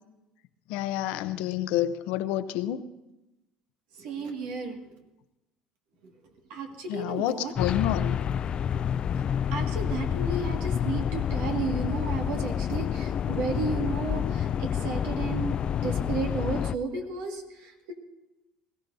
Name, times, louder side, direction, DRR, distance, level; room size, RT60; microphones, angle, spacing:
voice 1, 0.7-2.8 6.9-8.2, left 12 dB, 75° left, 12 dB, 0.7 m, -28 dB
voice 2, 4.0-4.8 6.5-7.5 9.5-17.9, right 4 dB, 80° right, 2 dB, 2.0 m, -33 dB
sound 1, 7.6-16.7, left 8 dB, 40° left, 0.3 m, -28 dB
21.0 x 15.0 x 2.7 m, 0.99 s
supercardioid pair, 100°, 2 cm